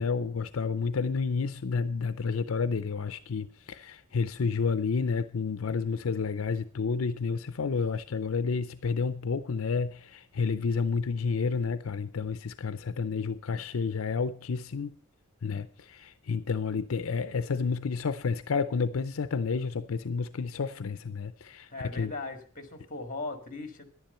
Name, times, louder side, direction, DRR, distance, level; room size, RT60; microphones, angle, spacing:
voice 1, 0.0-15.0 15.4-22.1, left 5 dB, 85° left, 0.6 m, -30 dB
voice 2, 21.7-23.8, left 3 dB, 40° left, 2.0 m, -38 dB
11.0 x 10.5 x 5.6 m
head